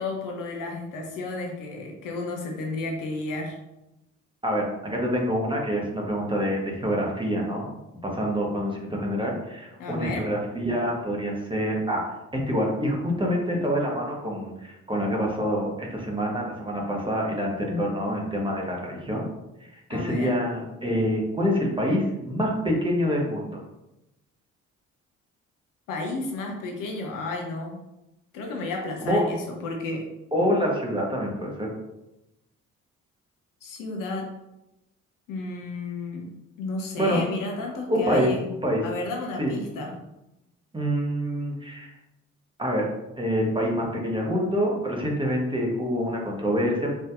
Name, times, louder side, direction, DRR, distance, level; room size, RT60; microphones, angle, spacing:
voice 1, 0.0-3.5 9.8-10.3 19.9-20.3 25.9-27.8 28.3-30.1 33.6-34.3 35.3-36.3 36.6-38.5 38.8-40.0, left 2 dB, 55° left, 1 dB, 0.8 m, -32 dB
voice 2, 4.4-7.7 8.0-12.0 12.3-19.3 19.6-23.6 29.0-29.3 30.3-31.7 37.0-37.2 37.9-38.3 38.6-38.8 39.4-39.6 40.7-41.9 42.6-46.9, equal, 10° right, -1 dB, 1.1 m, -26 dB
4.1 x 3.4 x 2.4 m, 0.93 s
figure-of-eight pair, 40°, 39 cm